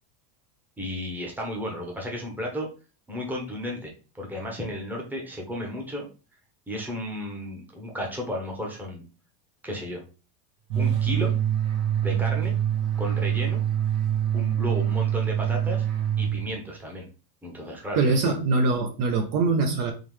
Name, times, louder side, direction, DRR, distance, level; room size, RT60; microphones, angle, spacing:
voice 1, 0.8-2.7 3.1-6.1 6.7-9.0 9.6-10.0 10.8-11.3 12.0-12.5 13.0-13.6 14.3-15.9 16.2-17.0 17.4-18.3, left 1 dB, 5° right, 0 dB, 0.9 m, -33 dB
sound 1, 10.7-16.8, right 10 dB, 75° right, 1.3 m, -25 dB
voice 2, 17.9-19.9, right 3 dB, 45° right, 4 dB, 0.6 m, -23 dB
3.8 x 3.1 x 3.1 m, 0.34 s
supercardioid pair, 150°, 48 cm